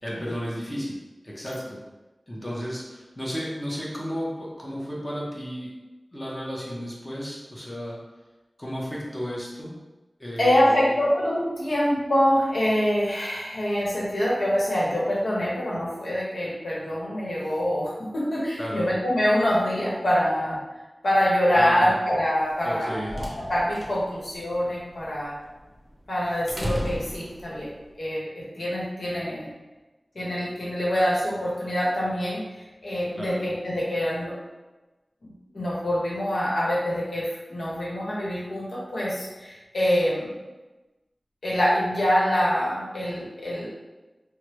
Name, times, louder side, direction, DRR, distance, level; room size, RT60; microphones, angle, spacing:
voice 1, 0.0-1.0 1.2-1.8 2.3-5.8 6.1-8.0 8.6-9.8 10.2-10.9 18.6-18.9 21.5-21.9 22.6-23.1 33.1-33.4, equal, 15° left, -5 dB, 0.7 m, -33 dB
voice 2, 10.4-20.6 21.0-25.3 26.1-27.7 27.9-29.5 30.1-34.3 35.2-40.4 41.4-43.7, equal, 90° left, -6 dB, 0.9 m, -25 dB
sound 1, 22.9-27.8, equal, 30° right, 0.6 m, -36 dB
3.2 x 2.0 x 3.0 m, 1.1 s
wide cardioid pair, 70°, 0 cm